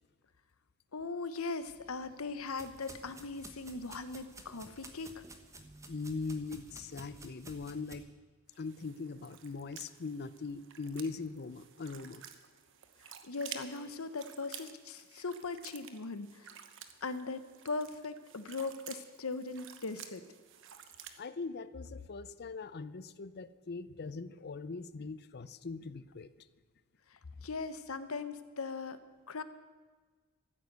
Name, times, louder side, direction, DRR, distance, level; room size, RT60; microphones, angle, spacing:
voice 1, 0.9-5.2 13.2-16.5 17.0-20.2 27.1-29.4, left 3 dB, 90° left, 12 dB, 1.0 m, -39 dB
sound 1, 1.6-7.9, right 2 dB, 15° right, 1.2 m, -53 dB
voice 2, 5.9-8.1 8.6-12.2 21.2-26.3, left 4 dB, 50° left, 16 dB, 0.6 m, -41 dB
sound 2, 8.5-21.2, right 9 dB, 65° right, 1.1 m, -52 dB
14.0 x 9.3 x 8.0 m, 1.4 s
head